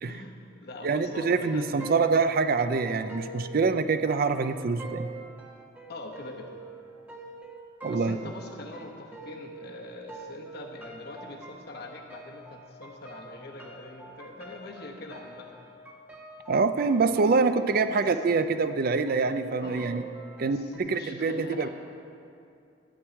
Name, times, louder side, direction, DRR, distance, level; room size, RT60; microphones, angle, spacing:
voice 1, 0.0-2.1 5.9-6.5 7.8-15.6 17.9-18.5 19.6-19.9 20.4-21.7, left 2 dB, 60° left, 1 dB, 1.3 m, -43 dB
voice 2, 0.8-5.1 7.8-8.2 16.5-20.0 20.4-21.7, right 4 dB, 55° right, 10 dB, 0.5 m, -25 dB
sound 1, 1.1-9.8 10.1-20.8, right 3 dB, 10° right, 1.2 m, -45 dB
13.0 x 4.7 x 8.7 m, 2.6 s
head